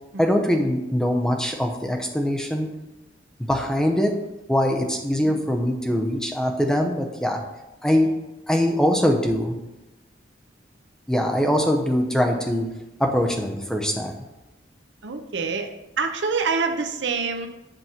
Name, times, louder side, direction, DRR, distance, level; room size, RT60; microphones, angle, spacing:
voice 1, 0.2-2.7 3.5-4.1 4.5-7.4 7.8-8.1 8.5-9.6 11.1-12.7 13.0-14.1, equal, 5° left, 2 dB, 0.5 m, -22 dB
voice 2, 15.0-15.7 16.0-17.5, right 4 dB, 70° right, 5 dB, 0.7 m, -26 dB
7.8 x 3.0 x 5.6 m, 0.99 s
head